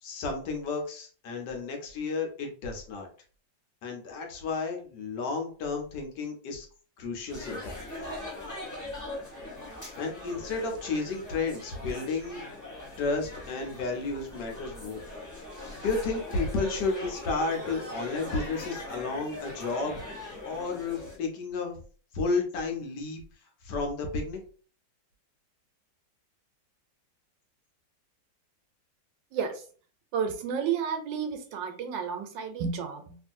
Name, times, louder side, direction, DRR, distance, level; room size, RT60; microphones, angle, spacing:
voice 1, 0.0-3.1 3.8-6.7 7.0-7.8 10.0-12.4 13.0-15.0 15.8-20.0 20.4-21.8 22.1-23.2 23.6-24.4, left 3 dB, 70° left, 2 dB, 1.3 m, -32 dB
sound 1, 7.3-21.2, left 2 dB, 20° left, 0.5 m, -41 dB
voice 2, 29.3-29.6 30.1-33.2, right 7 dB, 85° right, 5 dB, 1.3 m, -31 dB
3.0 x 2.6 x 2.5 m, 0.41 s
omnidirectional pair, 2.0 m